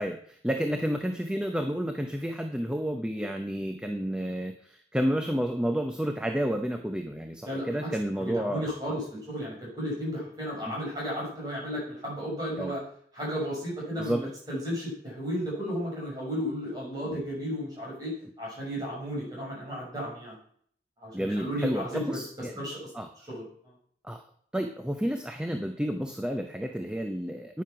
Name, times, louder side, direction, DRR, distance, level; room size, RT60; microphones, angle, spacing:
voice 1, 0.0-8.7 10.7-10.8 12.6-12.7 14.0-14.3 17.0-17.2 21.1-22.5 22.9-23.1 24.0-24.2 24.5-27.6, equal, 5° right, 5 dB, 0.6 m, -30 dB
voice 2, 7.4-7.9 8.2-12.8 13.1-20.4 21.0-22.2 22.6-22.9 23.3-23.7, equal, 25° right, -4 dB, 6.5 m, -34 dB
9.7 x 9.3 x 5.8 m, 0.62 s
head